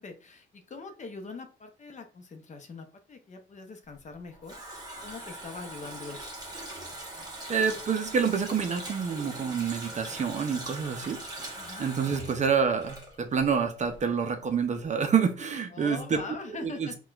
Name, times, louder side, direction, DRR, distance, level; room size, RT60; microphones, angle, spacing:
voice 1, 0.0-4.5 5.0-6.3 11.6-11.9 15.7-16.9, left 4 dB, 40° left, 0.6 m, -43 dB
Water tap faucet, 4.0-13.6 13.9-14.0, right 1 dB, 20° right, 1.1 m, -41 dB
voice 2, 7.5-11.5 11.8-16.2 16.5-16.9, right 6 dB, 35° right, 0.5 m, -28 dB
4.2 x 2.2 x 2.3 m
cardioid pair, 90°, 20 cm